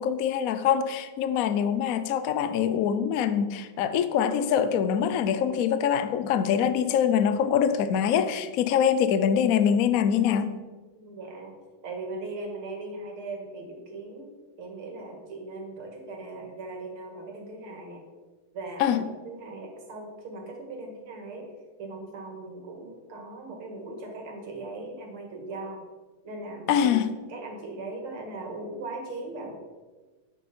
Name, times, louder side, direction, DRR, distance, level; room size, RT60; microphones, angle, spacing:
voice 1, 0.0-10.6 18.8-19.0 26.7-27.1, left 8 dB, 80° left, 0.7 m, -24 dB
voice 2, 10.9-11.6 11.8-14.3 14.6-18.0 18.5-21.5 21.8-25.8 26.2-26.9 27.3-29.5, right 2 dB, 80° right, 2.7 m, -39 dB
10.0 x 8.0 x 4.3 m
omnidirectional pair, 2.3 m